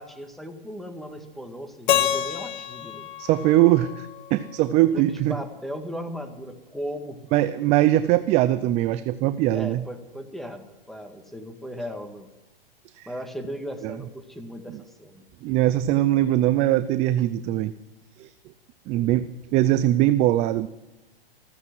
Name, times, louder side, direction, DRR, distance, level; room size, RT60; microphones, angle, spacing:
voice 1, 0.0-3.1 4.9-7.2 9.5-12.3 13.1-15.2, equal, ahead, 6 dB, 1.8 m, -37 dB
Keyboard (musical), 1.9-4.8, left 11 dB, 55° left, 1.6 m, -28 dB
voice 2, 3.2-5.4 7.3-9.8 12.9-13.1 13.8-13.9 15.4-17.7 18.2-18.3 18.9-20.7, right 14 dB, 20° right, 14 dB, 0.5 m, -21 dB
15.0 x 14.5 x 6.2 m, 1.0 s
hypercardioid pair, 135°, 29 cm